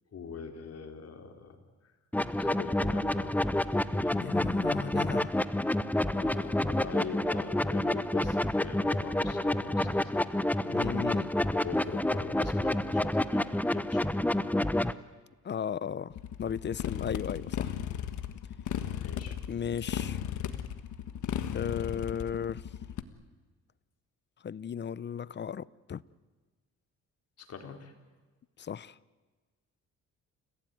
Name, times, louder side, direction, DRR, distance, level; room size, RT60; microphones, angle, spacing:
voice 1, 0.1-1.6 1.8-1.9 2.4-3.4 3.9-4.3 6.1-10.1 11.5-14.1 19.0-19.4 27.4-27.9, left 5 dB, 55° left, 4.0 m, -42 dB
sound 1, 2.1-14.9, left 1 dB, 5° left, 0.8 m, -29 dB
voice 2, 4.0-5.3 10.6-11.3 15.4-16.1 16.4-17.7 19.5-20.2 21.5-22.6 24.4-26.0 28.6-29.0, left 8 dB, 35° left, 0.7 m, -35 dB
Motorcycle, 16.1-23.0, left 10 dB, 75° left, 1.5 m, -35 dB
29.5 x 17.0 x 9.5 m
cardioid pair, 90°, 30 cm